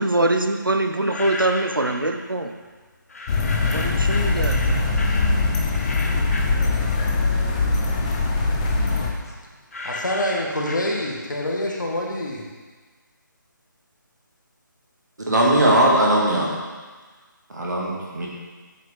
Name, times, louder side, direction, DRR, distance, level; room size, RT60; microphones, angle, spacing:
voice 1, 0.0-2.5 3.7-4.7, right 2 dB, 85° right, 6 dB, 0.7 m, -23 dB
sound 1, 0.8-2.1 3.1-7.3 7.7-11.4, left 2 dB, 45° left, 0.9 m, -35 dB
sound 2, 3.3-9.1, left 3 dB, 20° left, 0.6 m, -22 dB
voice 2, 9.8-12.4, left 1 dB, 65° left, 0 dB, 1.5 m, -26 dB
voice 3, 15.3-16.5 17.5-18.3, right 1 dB, 60° right, -3 dB, 2.0 m, -19 dB
8.1 x 6.1 x 3.4 m, 1.4 s
figure-of-eight pair, 150°, 11 cm